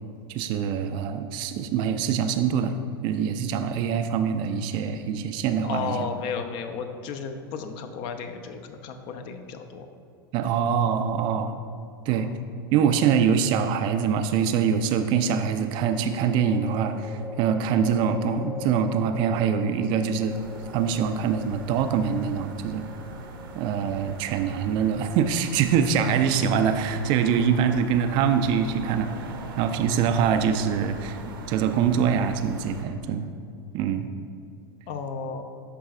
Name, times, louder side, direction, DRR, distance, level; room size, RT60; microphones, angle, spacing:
voice 1, 0.3-2.8 3.0-6.1 10.3-11.5 12.1-12.3 12.7-20.4 20.7-22.9 23.5-33.3 33.7-34.1, right 7 dB, 40° right, 8 dB, 0.4 m, -24 dB
voice 2, 5.6-9.9 12.1-12.3 34.9-35.4, left 6 dB, 45° left, 7 dB, 0.6 m, -34 dB
sound 1, 12.7-13.5 15.8-27.1, left 3 dB, ahead, 0.6 m, -43 dB
sound 2, 20.3-32.8, right 3 dB, 65° right, 0.8 m, -41 dB
11.5 x 4.7 x 2.4 m, 2.5 s
figure-of-eight pair, 90°, 12 cm